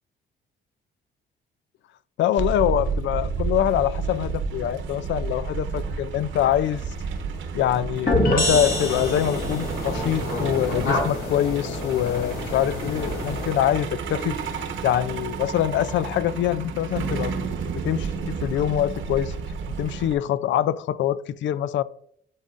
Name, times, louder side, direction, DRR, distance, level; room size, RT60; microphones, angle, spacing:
voice 1, 2.2-6.8 7.5-14.4 14.8-17.3 17.8-19.3 19.8-21.8, left 11 dB, 70° left, 0.4 m, -24 dB
Truck, 2.4-20.1, right 5 dB, 75° right, 1.1 m, -31 dB
sound 1, 8.1-9.8, left 1 dB, 45° left, 1.6 m, -23 dB
sound 2, 8.5-13.9, left 2 dB, 90° left, 2.5 m, -31 dB
11.5 x 4.0 x 2.5 m
cardioid pair, 90°, 20 cm